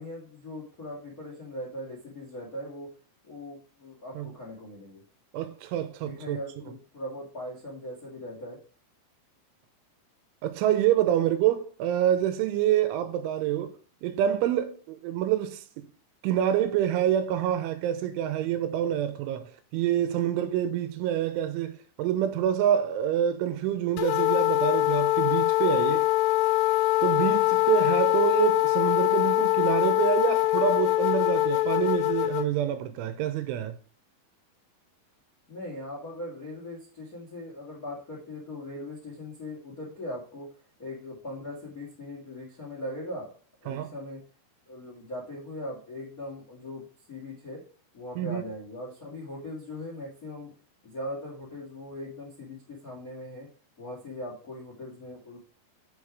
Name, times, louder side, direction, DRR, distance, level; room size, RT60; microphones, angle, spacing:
voice 1, 0.0-2.9 3.2-5.0 6.0-8.6 35.5-40.5 40.8-43.3 43.6-44.2 44.7-47.6 47.9-50.5 50.8-53.5 53.8-55.4, left 1 dB, 50° left, 1.0 m, -40 dB
voice 2, 5.3-6.4 10.4-13.8 14.0-15.9 16.2-26.1 27.0-33.8 43.7-43.9 48.2-48.4, right 11 dB, 85° right, 3.3 m, -27 dB
sound 1, 24.0-32.5, left 18 dB, 90° left, 3.3 m, -23 dB
7.9 x 6.6 x 4.9 m
omnidirectional pair, 5.4 m